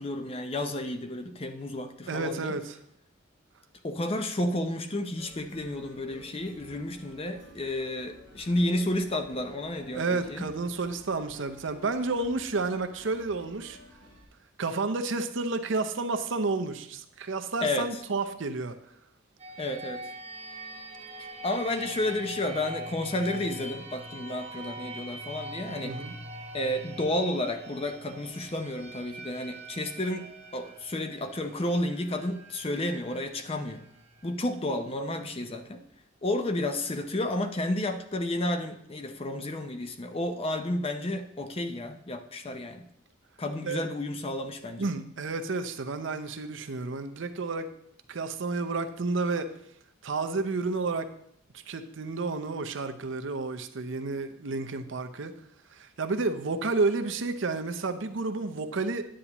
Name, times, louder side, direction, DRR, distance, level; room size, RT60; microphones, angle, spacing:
voice 1, 0.0-2.6 3.8-10.5 17.6-18.0 19.6-20.0 21.2-26.0 26.5-33.8 34.2-35.8 36.2-42.9 43.4-44.9, left 1 dB, 30° left, 7 dB, 0.6 m, -31 dB
voice 2, 2.1-2.8 9.9-13.8 14.6-18.7 25.8-26.1 43.6-43.8 44.8-47.7 48.1-49.5 50.0-51.1 51.7-55.3 55.7-59.0, right 3 dB, 65° right, 8 dB, 0.6 m, -31 dB
sound 1, 5.2-14.2, equal, 85° left, 3.2 m, -53 dB
sound 2, 19.4-35.0, right 1 dB, 30° right, 1.1 m, -43 dB
9.9 x 8.4 x 3.0 m, 0.71 s
head